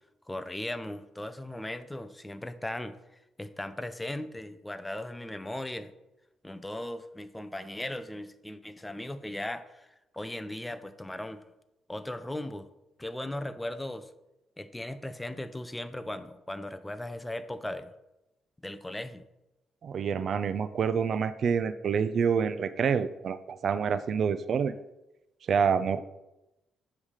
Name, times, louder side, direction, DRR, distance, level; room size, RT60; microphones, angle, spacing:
voice 1, 0.3-3.0 3.4-5.9 6.4-9.9 10.1-11.4 11.9-12.7 13.0-14.1 14.6-17.9 18.6-19.2, left 1 dB, 10° left, 12 dB, 0.4 m, -37 dB
voice 2, 19.8-24.7 25.5-26.0, right 6 dB, 55° right, 13 dB, 0.3 m, -27 dB
7.1 x 3.2 x 5.0 m, 0.94 s
cardioid pair, 90°, 0 cm